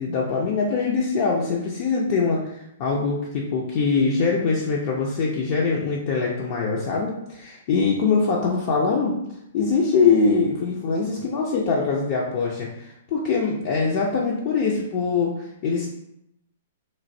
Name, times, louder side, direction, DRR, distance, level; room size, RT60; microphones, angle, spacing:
voice 1, 0.0-9.1 9.5-15.9, left 4 dB, 50° left, -3 dB, 0.5 m, -23 dB
3.1 x 2.5 x 2.6 m, 0.81 s
hypercardioid pair, 120°, 0 cm